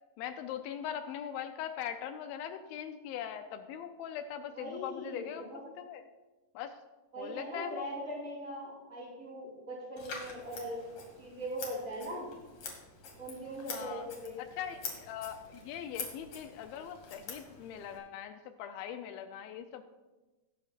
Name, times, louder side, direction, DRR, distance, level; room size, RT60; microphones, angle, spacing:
voice 1, 0.2-6.0 6.5-6.8 7.2-7.9 13.7-14.1 14.4-19.8, left 9 dB, 80° left, 8 dB, 2.3 m, -41 dB
voice 2, 4.5-5.6 7.1-10.8 11.2-12.3 13.2-14.4, equal, 25° right, -10 dB, 3.5 m, -40 dB
Scissors, 10.0-18.0, left 4 dB, 55° left, 3.1 m, -46 dB
20.0 x 8.7 x 2.5 m, 1.1 s
omnidirectional pair, 4.5 m